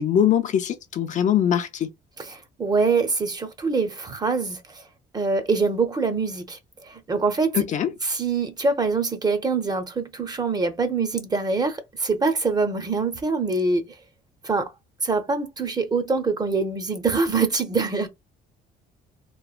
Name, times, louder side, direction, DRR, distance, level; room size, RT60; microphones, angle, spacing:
voice 1, 0.0-1.9 7.5-7.9, left 9 dB, 45° left, 0.4 m, -22 dB
voice 2, 2.2-4.8 5.1-7.6 8.0-13.8 14.4-14.7 15.0-18.1, right 4 dB, 25° right, 0.6 m, -24 dB
3.0 x 2.1 x 2.4 m
cardioid pair, 110°, 17 cm